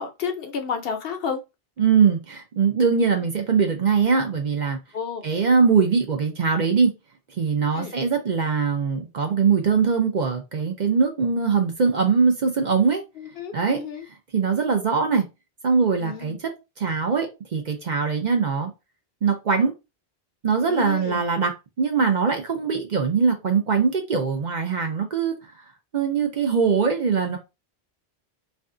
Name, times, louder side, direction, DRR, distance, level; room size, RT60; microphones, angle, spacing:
voice 1, 0.0-1.4 4.9-5.2 7.8-7.9 13.4-14.0 16.0-16.4 20.7-21.2, left 6 dB, 65° left, 0.7 m, -31 dB
voice 2, 1.8-4.8 5.2-6.9 7.4-13.0 13.5-13.8 14.3-15.2 15.6-18.7 19.2-19.7 20.4-25.4 25.9-27.4, right 5 dB, 50° right, 0.6 m, -22 dB
2.6 x 2.3 x 3.6 m
omnidirectional pair, 1.1 m